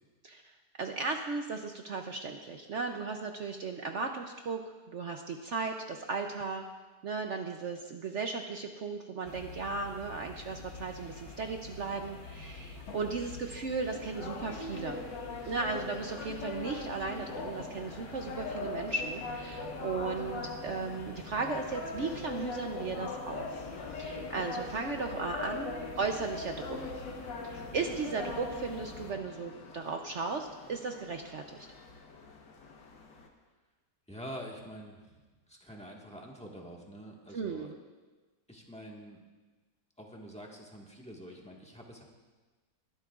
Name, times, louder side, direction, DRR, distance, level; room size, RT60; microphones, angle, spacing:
voice 1, 0.8-6.6 7.0-15.0 15.5-23.4 23.9-26.9 27.4-31.6 37.3-37.8, right 4 dB, 60° right, 4 dB, 0.7 m, -36 dB
sound 1, 9.2-29.1, left 3 dB, 55° left, 1.9 m, -47 dB
sound 2, 13.9-33.3, left 3 dB, 85° left, 1.9 m, -41 dB
voice 2, 34.1-35.2 35.5-37.7 38.5-39.2 40.0-42.0, equal, 5° left, -2 dB, 1.4 m, -46 dB
21.0 x 11.5 x 2.4 m, 1.3 s
omnidirectional pair, 1.9 m